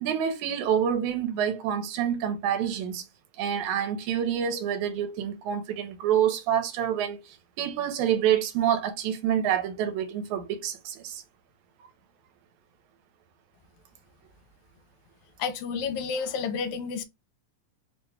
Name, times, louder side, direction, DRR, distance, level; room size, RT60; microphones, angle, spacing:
voice 1, 0.0-3.0 3.4-11.2, right 9 dB, 90° right, 2.1 m, -27 dB
voice 2, 15.4-17.0, left 5 dB, 85° left, 1.9 m, -30 dB
4.6 x 2.2 x 3.3 m
omnidirectional pair, 3.4 m